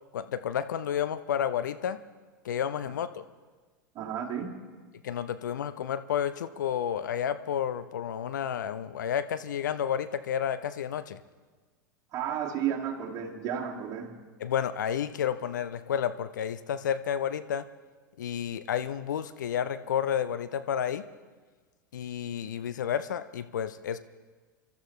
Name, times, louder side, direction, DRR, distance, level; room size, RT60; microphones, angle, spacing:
voice 1, 0.1-2.0 2.4-3.2 5.0-11.2 14.4-17.7 18.2-21.1 21.9-24.0, left 9 dB, 65° left, 12 dB, 0.7 m, -31 dB
voice 2, 4.0-4.6 12.1-14.1, right 9 dB, 35° right, 0 dB, 2.3 m, -32 dB
29.0 x 13.0 x 3.2 m, 1.4 s
figure-of-eight pair, 85°, 11 cm